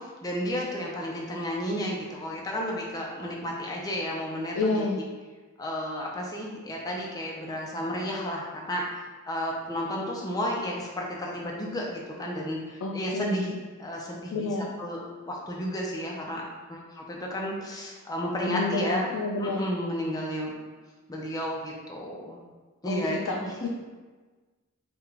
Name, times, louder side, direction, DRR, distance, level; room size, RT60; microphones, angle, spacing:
voice 1, 0.0-4.9 5.6-9.0 9.3-13.5 13.8-16.4 16.7-19.1 19.4-20.5 21.1-22.4 22.8-23.7, equal, 20° left, -2 dB, 0.5 m, -32 dB
voice 2, 4.5-5.0 12.8-13.4 14.3-14.7 18.4-19.7 22.9-23.3 23.6-23.7, left 3 dB, 85° left, -1 dB, 0.3 m, -29 dB
3.6 x 2.3 x 3.2 m, 1.3 s
head